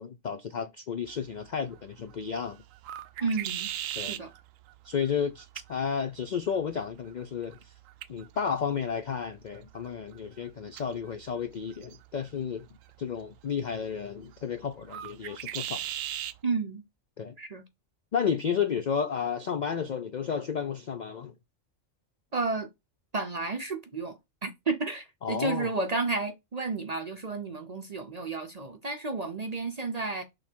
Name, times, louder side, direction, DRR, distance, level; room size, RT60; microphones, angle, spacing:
voice 1, 0.0-2.6 4.0-4.2 4.8-7.7 8.1-12.7 13.0-15.8 17.2-17.3 18.1-21.3 25.2-25.7, left 7 dB, 60° left, 0.4 m, -32 dB
sound 1, 1.1-16.4, right 12 dB, 80° right, 1.0 m, -42 dB
voice 2, 3.2-3.7 4.1-4.3 16.4-16.8 17.4-17.6 22.3-22.7 23.1-30.2, right 3 dB, 40° right, 0.6 m, -32 dB
6.4 x 3.5 x 4.5 m
omnidirectional pair, 1.4 m